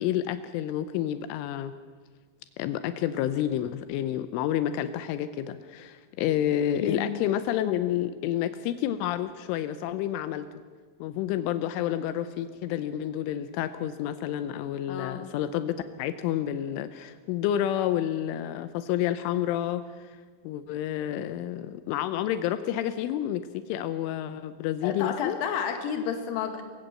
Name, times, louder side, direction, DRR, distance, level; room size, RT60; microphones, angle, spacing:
voice 1, 0.0-1.7 2.6-10.5 11.0-25.4, left 11 dB, 85° left, 11 dB, 3.2 m, -29 dB
voice 2, 14.9-15.2 24.8-26.6, left 7 dB, 55° left, 6 dB, 3.2 m, -30 dB
25.0 x 16.0 x 7.7 m, 1.5 s
omnidirectional pair, 5.6 m